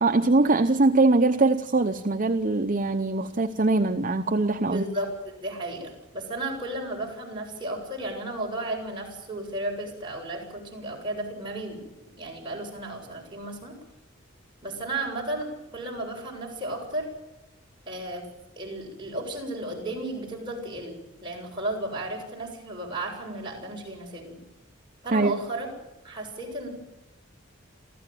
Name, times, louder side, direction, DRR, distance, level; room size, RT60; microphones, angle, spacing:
voice 1, 0.0-4.8 25.1-25.4, right 3 dB, 40° right, 7 dB, 0.8 m, -22 dB
voice 2, 4.6-5.1 5.4-11.8 12.2-13.7 14.6-15.5 15.7-17.1 17.9-18.3 18.6-24.4 25.0-25.7 26.0-26.7, right 1 dB, 25° right, -1 dB, 7.4 m, -34 dB
28.0 x 15.0 x 9.2 m, 1.0 s
head